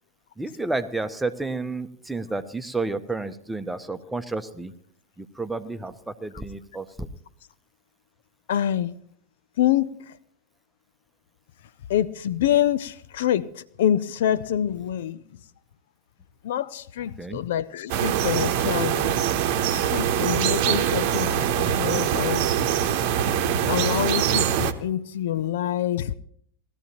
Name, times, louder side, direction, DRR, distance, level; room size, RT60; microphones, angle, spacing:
voice 1, 0.4-4.7 5.2-7.1 17.2-17.4, right 3 dB, 5° right, 10 dB, 1.0 m, -31 dB
voice 2, 8.5-9.0 9.6-9.9 11.9-15.2 16.4-19.2 19.7-22.5 23.7-26.1, left 11 dB, 60° left, 17 dB, 0.5 m, -26 dB
sound 1, 17.9-24.7, right 9 dB, 50° right, 1.0 m, -23 dB
19.5 x 13.5 x 3.0 m, 0.65 s
figure-of-eight pair, 90°, 0 cm